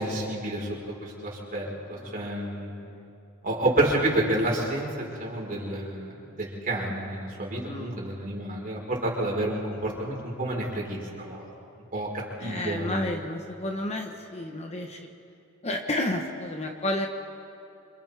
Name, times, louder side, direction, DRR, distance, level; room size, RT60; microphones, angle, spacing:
voice 1, 0.0-2.7 3.4-11.5 11.9-12.1 12.4-13.1, right 1 dB, 40° right, -3 dB, 4.9 m, -29 dB
voice 2, 1.9-2.3 2.8-3.0 7.7-8.0 12.4-15.1 15.6-17.1, left 1 dB, 30° left, 3 dB, 1.3 m, -31 dB
28.5 x 26.5 x 3.6 m, 2.8 s
head